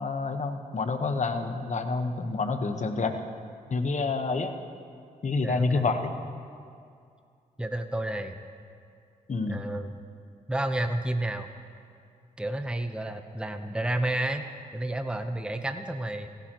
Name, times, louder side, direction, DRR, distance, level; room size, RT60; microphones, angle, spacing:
voice 1, 0.0-3.1 3.7-4.5 5.2-6.1 9.3-9.6, left 3 dB, 45° left, 7 dB, 1.2 m, -28 dB
voice 2, 5.4-5.9 7.6-8.4 9.5-10.0 10.5-11.5 12.4-14.4 14.7-16.3, right 1 dB, 5° right, 7 dB, 0.9 m, -31 dB
16.0 x 15.5 x 3.0 m, 2.3 s
supercardioid pair, 45°, 16 cm